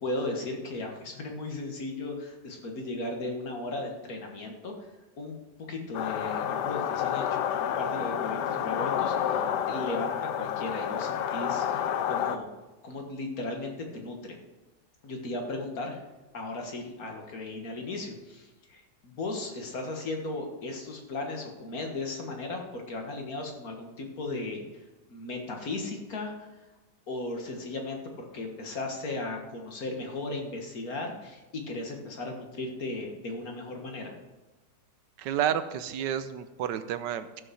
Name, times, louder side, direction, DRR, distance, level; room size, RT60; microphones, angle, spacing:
voice 1, 0.0-4.7 5.2-5.4 5.7-12.5 12.8-14.4 15.0-16.0 16.3-24.7 25.1-26.5 27.1-34.1, left 2 dB, 55° left, 2 dB, 2.0 m, -36 dB
sound 1, 5.9-12.4, left 9 dB, 75° left, 1.2 m, -29 dB
voice 2, 35.2-37.4, right 9 dB, 80° right, 11 dB, 1.3 m, -30 dB
14.0 x 5.6 x 6.4 m, 1.2 s
omnidirectional pair, 1.9 m